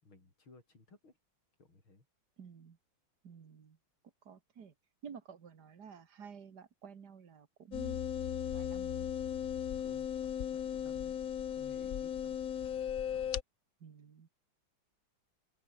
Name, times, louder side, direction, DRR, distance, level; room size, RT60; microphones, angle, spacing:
voice 1, 0.0-1.2 1.6-2.1 9.8-11.1 11.5-12.5, left 3 dB, 75° left, 7.1 m, -60 dB
voice 2, 2.4-2.8 3.2-3.8 4.2-4.7 5.0-8.0 8.4-9.1 13.8-14.3, right 6 dB, 50° right, 2.3 m, -52 dB
sound 1, 7.7-13.4, left 9 dB, 50° left, 1.2 m, -37 dB
open air
omnidirectional pair, 2.3 m